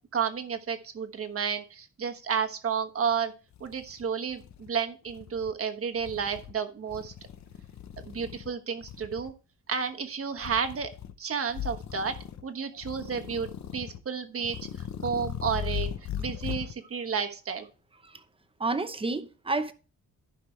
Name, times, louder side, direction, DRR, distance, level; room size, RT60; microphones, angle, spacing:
voice 1, 0.1-3.3 3.6-7.1 8.0-9.3 9.7-10.9 11.2-15.9 16.2-17.7, right 6 dB, 45° right, 1.3 m, -31 dB
sound 1, 3.1-3.2 3.5-4.7 5.1-5.5 6.0-6.5 6.9-8.5 8.8-9.3 10.4-11.1 11.5-12.4 12.8-14.0 14.4-16.7, left 9 dB, 60° left, 0.8 m, -38 dB
voice 2, 18.6-19.7, right 3 dB, 15° right, 0.7 m, -30 dB
14.0 x 5.9 x 3.3 m
wide cardioid pair, 165°, 32 cm